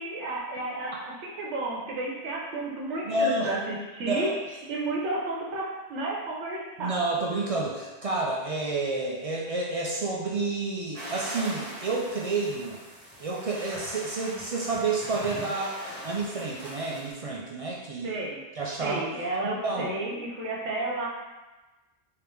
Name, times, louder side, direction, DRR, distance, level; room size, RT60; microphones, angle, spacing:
voice 1, 0.0-4.3 4.7-7.0 18.0-18.4 18.8-21.1, right 2 dB, 85° right, -2 dB, 1.1 m, -32 dB
voice 2, 3.0-3.5 4.0-4.4 6.8-12.8 13.2-15.8 16.0-18.2 18.6-19.1 19.6-19.9, right 3 dB, 55° right, -3 dB, 0.4 m, -29 dB
sound 1, 10.9-17.1, equal, 30° right, 1.4 m, -40 dB
3.7 x 3.0 x 3.4 m, 1.1 s
omnidirectional pair, 1.2 m